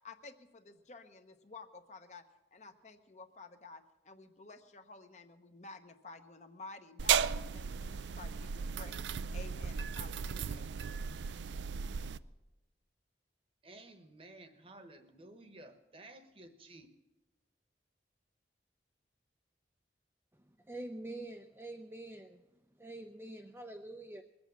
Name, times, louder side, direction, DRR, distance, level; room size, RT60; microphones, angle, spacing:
voice 1, 0.0-2.2 2.5-10.7, left 3 dB, 40° left, 7 dB, 0.9 m, -52 dB
sound 1, 7.0-12.2, right 7 dB, 90° right, 0.4 m, -35 dB
voice 2, 13.6-16.9, right 2 dB, 30° right, 8 dB, 1.1 m, -54 dB
voice 3, 20.7-22.4 22.8-24.2, right 1 dB, 15° right, 3 dB, 0.5 m, -45 dB
21.0 x 8.0 x 7.2 m, 1.1 s
head